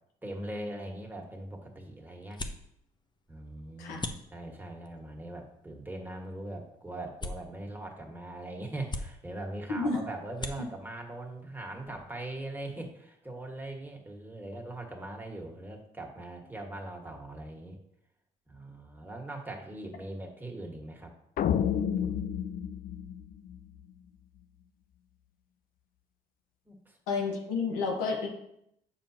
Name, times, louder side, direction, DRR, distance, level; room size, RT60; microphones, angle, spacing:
voice 1, 0.2-2.4 3.3-17.8 18.5-21.1 21.6-22.2 26.7-27.0, right 1 dB, 10° right, 1 dB, 1.7 m, -41 dB
sound 1, 0.9-12.5, left 2 dB, 25° left, 0.8 m, -45 dB
sound 2, 21.4-23.8, left 9 dB, 55° left, 0.4 m, -30 dB
voice 2, 27.1-28.3, left 4 dB, 90° left, 2 dB, 1.1 m, -30 dB
7.3 x 6.0 x 2.9 m, 0.76 s
supercardioid pair, 55°, 17 cm